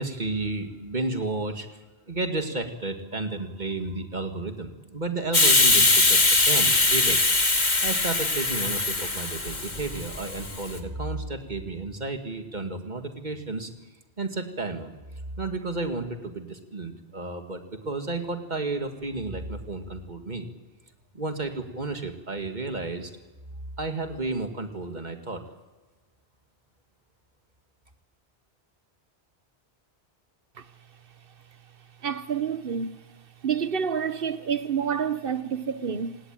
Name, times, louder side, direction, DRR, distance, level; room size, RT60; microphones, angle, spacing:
voice 1, 0.0-1.7 2.1-6.2 6.5-7.2 7.8-13.7 14.2-14.9 15.4-20.5 21.1-23.1 23.8-25.4, right 3 dB, 45° right, 2.3 m, -32 dB
Hiss, 5.3-10.7, left 2 dB, 45° left, 2.3 m, -22 dB
voice 2, 32.0-33.0 33.4-36.2, right 7 dB, 60° right, 1.1 m, -28 dB
27.0 x 18.0 x 9.2 m
omnidirectional pair, 1.1 m